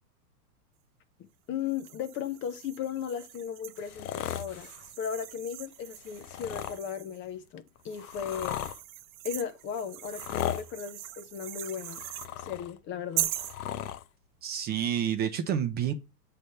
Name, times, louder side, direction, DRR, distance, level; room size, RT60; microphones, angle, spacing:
voice 1, 1.5-4.7 5.0-8.6 9.2-12.0 12.4-13.3, left 8 dB, 25° left, 0.6 m, -36 dB
sound 1, 1.6-7.2 7.8-12.3 13.2-13.6, right 14 dB, 60° right, 0.7 m, -40 dB
sound 2, 3.8-4.9 6.0-6.8 7.6-8.8 10.1-10.7 11.7-12.8 13.1-14.0 15.1-15.2, left 12 dB, 65° left, 0.7 m, -37 dB
voice 2, 14.4-15.9, right 9 dB, 20° right, 0.5 m, -29 dB
7.5 x 3.4 x 5.5 m
hypercardioid pair, 120°, 47 cm